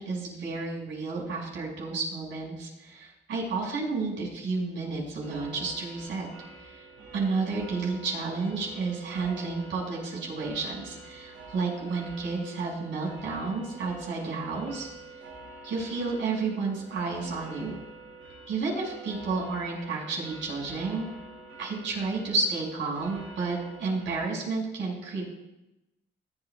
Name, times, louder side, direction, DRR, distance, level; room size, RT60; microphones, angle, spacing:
voice 1, 0.0-6.3 6.6-6.9 7.1-14.9 15.6-17.8 18.5-21.1 21.6-25.2, right 4 dB, 70° right, -2 dB, 5.6 m, -31 dB
sound 1, 5.2-24.2, right 2 dB, 90° right, 5.6 m, -47 dB
20.5 x 13.0 x 2.3 m, 0.94 s
cardioid pair, 90°, 20 cm